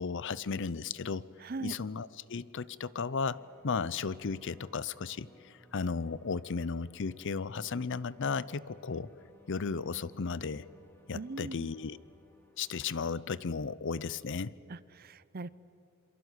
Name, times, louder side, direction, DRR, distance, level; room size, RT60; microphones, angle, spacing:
voice 1, 0.0-1.2 1.6-9.1 9.5-10.6 11.1-12.0 12.6-14.5, left 5 dB, 60° left, 19 dB, 0.6 m, -35 dB
voice 2, 1.4-1.8 11.1-11.7 14.7-15.5, right 3 dB, 45° right, 18 dB, 0.6 m, -40 dB
sound 1, 3.2-12.9, left 2 dB, 10° left, 2.5 m, -61 dB
27.5 x 23.0 x 8.2 m, 2.7 s
head